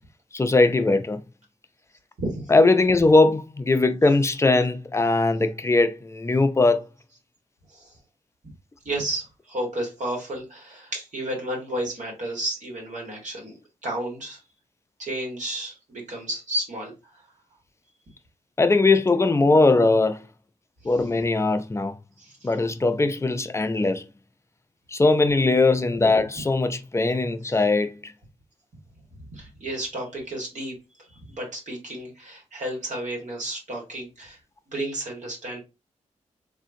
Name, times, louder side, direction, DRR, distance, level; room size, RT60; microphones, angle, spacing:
voice 1, 0.3-1.2 2.5-6.8 18.6-20.2 20.8-22.0 22.4-24.0 24.9-28.1, left 3 dB, 20° left, 0.4 m, -20 dB
voice 2, 2.2-2.5 7.7-7.9 8.8-14.4 15.0-16.9 22.2-22.5 29.1-30.7 31.1-34.4 34.7-35.6, right 1 dB, 70° right, 1.4 m, -32 dB
3.5 x 2.6 x 2.6 m
cardioid pair, 75°, 13 cm